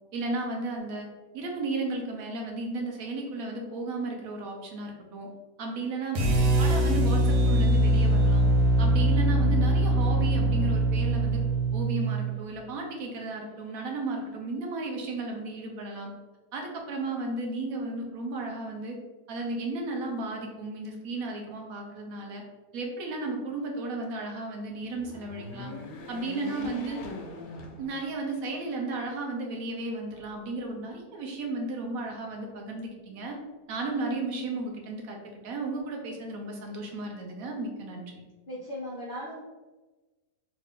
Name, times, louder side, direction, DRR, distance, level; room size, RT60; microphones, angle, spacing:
voice 1, 0.1-1.1 1.3-5.3 5.6-8.4 8.8-11.4 11.7-16.1 16.5-19.0 19.3-22.4 22.7-25.7 26.1-27.0 27.8-33.4 33.7-35.2 35.4-38.2, right 2 dB, 65° right, 1 dB, 1.1 m, -34 dB
sound 1, 6.1-12.3, right 1 dB, 80° right, 1.3 m, -23 dB
sound 2, 24.8-28.4 28.9-29.0 30.1-30.9, left 3 dB, 90° left, 1.2 m, -42 dB
voice 2, 38.5-39.4, equal, 60° left, -7 dB, 0.5 m, -37 dB
3.3 x 2.5 x 3.6 m, 1.2 s
omnidirectional pair, 1.8 m